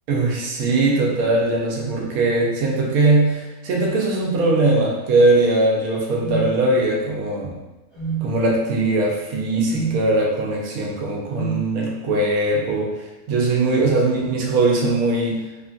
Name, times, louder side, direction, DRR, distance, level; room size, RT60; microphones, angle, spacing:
voice 1, 0.1-7.6 8.2-15.5, right 2 dB, 90° right, -2 dB, 1.1 m, -20 dB
sound 1, 6.2-6.5 7.9-8.2 9.7-10.0 11.3-11.6, right 7 dB, 45° right, 1.2 m, -26 dB
2.9 x 2.5 x 2.3 m, 1.0 s
omnidirectional pair, 1.5 m